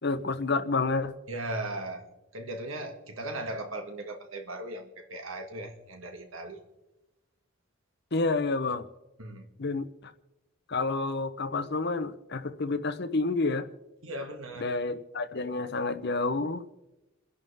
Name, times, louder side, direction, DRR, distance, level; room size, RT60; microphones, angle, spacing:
voice 1, 0.0-1.1 8.1-8.9 9.6-10.1 10.7-13.7 14.6-16.7, left 3 dB, 55° left, 11 dB, 0.9 m, -29 dB
voice 2, 1.3-6.6 9.2-9.5 14.0-14.7, right 1 dB, 85° right, 4 dB, 2.2 m, -38 dB
29.0 x 11.0 x 3.6 m, 1.0 s
head